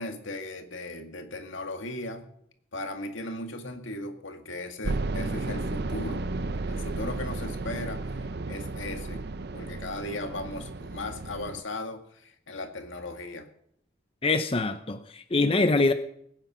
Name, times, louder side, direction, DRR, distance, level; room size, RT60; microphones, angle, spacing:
voice 1, 0.0-2.3 2.7-6.2 6.7-9.2 9.5-13.5, left 2 dB, 80° left, 5 dB, 2.0 m, -37 dB
sound 1, 4.8-11.6, right 2 dB, 55° right, 0.7 m, -33 dB
voice 2, 14.2-15.9, left 3 dB, 30° left, 8 dB, 0.7 m, -24 dB
21.0 x 9.3 x 6.1 m, 0.72 s
head